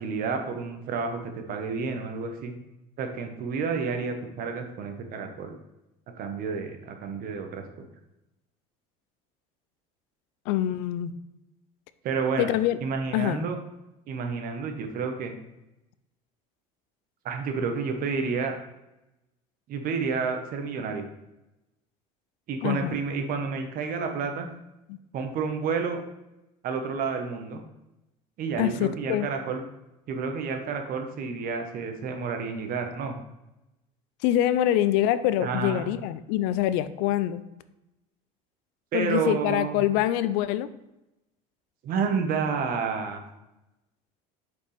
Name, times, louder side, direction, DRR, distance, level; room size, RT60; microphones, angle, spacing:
voice 1, 0.0-2.5 3.0-5.6 6.2-7.9 12.0-12.5 12.8-13.6 14.1-15.3 17.2-18.6 19.7-21.1 22.5-24.5 25.1-26.0 26.6-27.6 28.4-29.6 30.1-33.2 35.4-35.9 38.9-39.9 41.8-43.2, right 5 dB, 55° right, 5 dB, 1.2 m, -30 dB
voice 2, 10.5-11.1 12.4-12.8 13.1-13.4 22.6-23.0 24.9-25.0 28.6-29.3 34.2-37.4 38.9-40.7, left 12 dB, 75° left, 14 dB, 0.5 m, -25 dB
6.8 x 5.2 x 3.4 m, 0.94 s
supercardioid pair, 95°, 17 cm